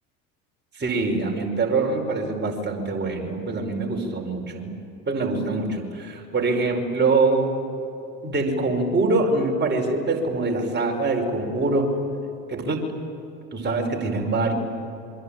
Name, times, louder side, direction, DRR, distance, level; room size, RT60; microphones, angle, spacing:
voice 1, 0.7-4.7 5.1-7.5 8.2-11.9 12.5-12.8 13.5-14.5, right 3 dB, 25° right, 1 dB, 5.0 m, -24 dB
27.0 x 23.0 x 9.0 m, 3.0 s
hypercardioid pair, 85°, 44 cm